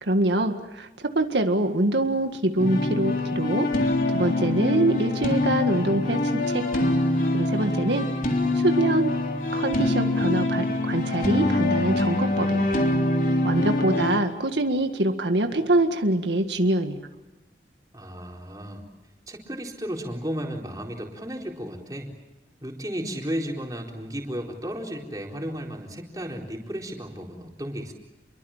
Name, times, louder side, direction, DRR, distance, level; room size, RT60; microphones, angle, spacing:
voice 1, 0.0-6.9 7.3-8.1 8.5-9.1 9.5-12.7 13.4-17.1, right 1 dB, 80° right, 6 dB, 1.9 m, -25 dB
sound 1, 2.6-14.2, left 2 dB, 50° left, 3.7 m, -24 dB
voice 2, 13.5-14.0 17.9-18.8 19.3-22.1 22.6-27.9, equal, 20° right, 1 dB, 4.1 m, -34 dB
30.0 x 23.0 x 7.4 m, 1.0 s
head